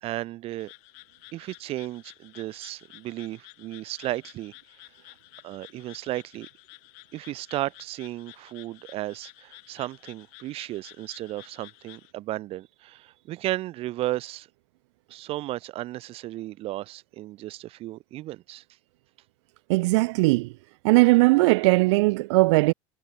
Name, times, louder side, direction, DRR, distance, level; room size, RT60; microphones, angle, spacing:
voice 1, 0.0-0.7 1.3-4.5 5.1-5.2 5.4-6.5 7.1-14.5 15.1-18.6, right 16 dB, 40° right, 1.2 m, -34 dB
sound 1, 0.6-12.1, left 40 dB or more, 65° left, 4.7 m, -52 dB
voice 2, 19.7-20.5 20.8-22.7, right 23 dB, 85° right, 0.4 m, -19 dB
cardioid pair, 150°, 14 cm